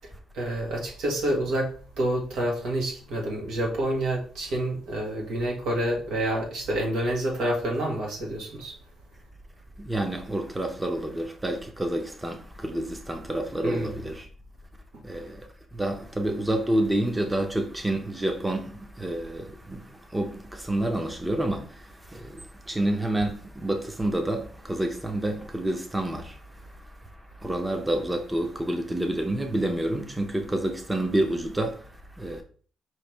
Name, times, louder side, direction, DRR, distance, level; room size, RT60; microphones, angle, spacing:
voice 1, 0.0-1.7 2.0-8.7 13.6-14.0, right 1 dB, 85° right, 1.6 m, -28 dB
voice 2, 9.8-14.3 15.0-32.4, right 1 dB, 10° right, 0.7 m, -29 dB
4.6 x 3.2 x 3.2 m
cardioid pair, 90°, 0 cm